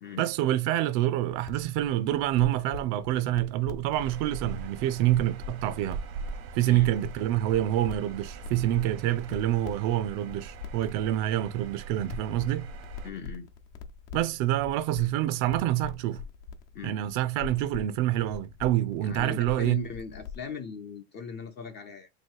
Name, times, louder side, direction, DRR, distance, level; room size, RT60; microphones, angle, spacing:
voice 1, 0.2-6.0 6.5-12.7 14.1-16.2 16.8-19.8, right 14 dB, 50° right, 0.4 m, -27 dB
sound 1, 1.3-20.5, left 5 dB, 70° left, 0.9 m, -44 dB
sound 2, 3.9-13.1, right 4 dB, 80° right, 0.9 m, -41 dB
voice 2, 13.0-13.5 16.7-17.0 19.0-22.1, left 6 dB, 30° left, 0.4 m, -39 dB
3.1 x 2.7 x 4.4 m
supercardioid pair, 120°, 40 cm